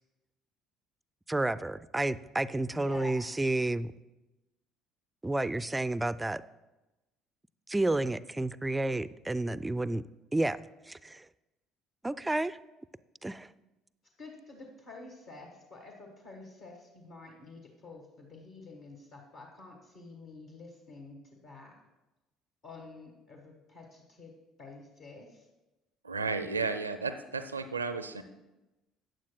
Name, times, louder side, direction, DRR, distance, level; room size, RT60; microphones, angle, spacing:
voice 1, 1.3-3.9 5.2-6.4 7.7-10.0 10.3-10.6 10.9-11.2 12.0-12.6 13.2-13.5, right 2 dB, 10° right, 16 dB, 0.3 m, -30 dB
voice 2, 2.7-3.3 14.2-21.7 22.6-25.5, left 3 dB, 55° left, 0 dB, 1.4 m, -49 dB
voice 3, 26.0-28.2, right 4 dB, 85° right, 10 dB, 0.4 m, -33 dB
14.5 x 9.2 x 2.2 m, 1.0 s
figure-of-eight pair, 55°, 0 cm